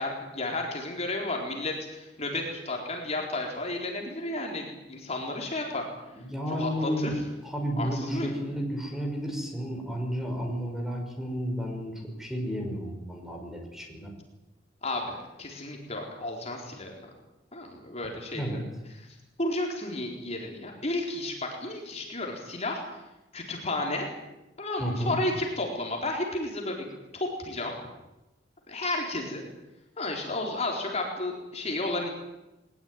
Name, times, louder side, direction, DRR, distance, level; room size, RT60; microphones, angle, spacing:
voice 1, 0.0-5.9 6.5-7.2 7.8-8.3 14.8-17.0 17.5-18.6 18.9-19.1 19.4-22.8 23.3-24.1 24.6-26.9 27.1-27.7 28.7-29.4 30.0-32.1, left 2 dB, 35° left, 1 dB, 4.2 m, -32 dB
voice 2, 6.1-7.1 7.4-14.1 18.3-18.6 24.8-25.2, equal, ahead, 2 dB, 5.8 m, -32 dB
21.0 x 20.0 x 9.6 m, 0.97 s
head